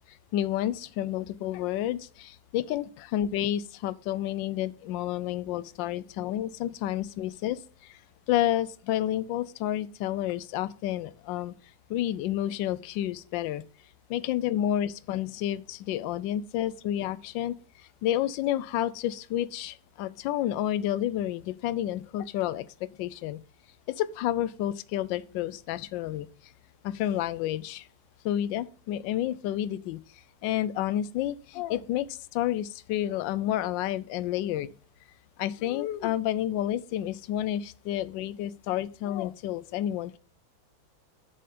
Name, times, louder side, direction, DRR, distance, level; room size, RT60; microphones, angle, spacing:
voice 1, 0.1-8.0 8.3-11.5 11.9-13.6 14.1-17.6 18.0-23.4 23.9-26.3 26.8-27.9 28.2-34.7 35.4-40.2, left 12 dB, 75° left, 1.2 m, -30 dB
7.3 x 6.9 x 5.1 m
omnidirectional pair, 2.1 m